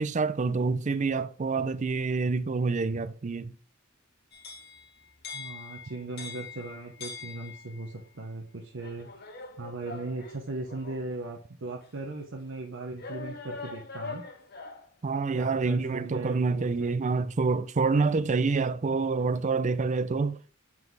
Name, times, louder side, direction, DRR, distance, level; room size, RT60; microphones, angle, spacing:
voice 1, 0.0-3.5 15.0-20.5, right 4 dB, 35° right, 0.4 m, -27 dB
sound 1, 4.3-7.9 8.8-11.1 11.8-11.9 13.0-14.9, left 4 dB, 50° left, 1.0 m, -43 dB
voice 2, 5.3-9.1 9.6-14.2 15.3-17.0, right 2 dB, 65° right, 1.0 m, -38 dB
7.5 x 4.0 x 4.7 m
head